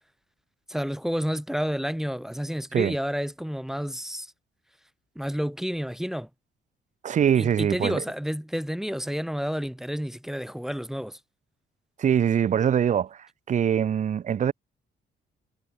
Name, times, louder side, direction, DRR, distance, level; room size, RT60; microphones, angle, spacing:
voice 1, 0.7-4.3 5.2-6.3 7.4-11.2, equal, ahead, 0.7 m, -30 dB
voice 2, 7.0-8.0 12.0-14.5, right 8 dB, 40° right, 0.5 m, -23 dB
cardioid pair, 90°, 20 cm